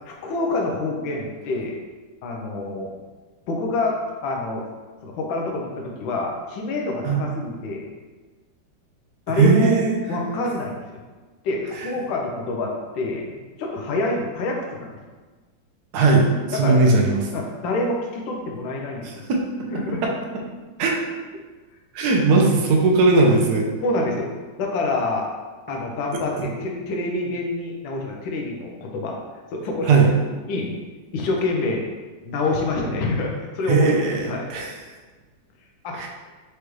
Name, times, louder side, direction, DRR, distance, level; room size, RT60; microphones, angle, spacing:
voice 1, 0.1-1.8 2.2-2.9 3.5-4.0 4.2-4.6 5.0-7.9 9.3-9.8 10.1-11.0 11.4-14.9 16.6-16.8 17.3-19.2 19.7-20.0 23.8-24.3 24.6-25.3 25.7-29.2 29.5-29.9 30.5-30.8 31.1-31.8 32.2-33.9 34.2-34.5 35.8-36.1, left 2 dB, 85° left, 0 dB, 1.4 m, -27 dB
voice 2, 9.3-10.0 11.8-11.9 15.9-17.2 19.0-19.4 20.0-20.1 20.8-20.9 21.9-23.7 26.4-26.5 29.8-30.1 33.7-34.7 35.9-36.1, right 3 dB, 70° right, 0 dB, 1.1 m, -18 dB
4.7 x 3.2 x 3.1 m, 1.3 s
omnidirectional pair, 2.1 m